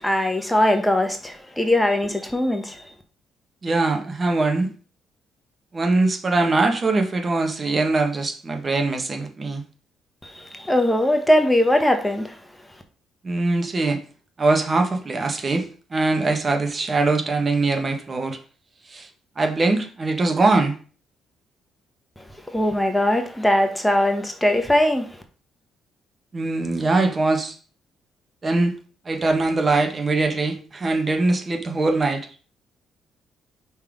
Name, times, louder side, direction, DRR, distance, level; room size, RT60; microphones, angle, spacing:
voice 1, 0.0-2.8 10.3-12.3 22.5-25.1, left 1 dB, 10° left, 1.2 m, -20 dB
voice 2, 3.6-4.7 5.7-9.6 13.2-14.0 14.4-18.4 18.9-19.1 19.4-20.8 26.3-27.5 28.4-28.7 29.0-32.3, right 3 dB, 35° right, 1.4 m, -22 dB
5.3 x 4.1 x 5.1 m
supercardioid pair, 70°, 0 cm